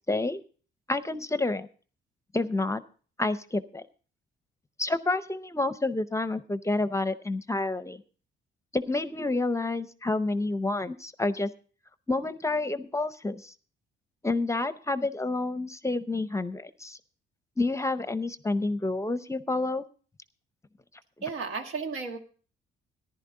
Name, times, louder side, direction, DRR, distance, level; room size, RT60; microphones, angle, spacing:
voice 1, 0.1-0.4 0.9-1.7 2.3-2.8 3.2-3.8 4.8-8.0 8.7-11.5 12.1-13.5 14.2-17.0 17.6-19.9, left 2 dB, 15° left, 13 dB, 0.6 m, -29 dB
voice 2, 21.2-22.2, right 5 dB, 85° right, 5 dB, 1.7 m, -33 dB
14.0 x 11.0 x 3.8 m, 0.40 s
cardioid pair, 90°, 20 cm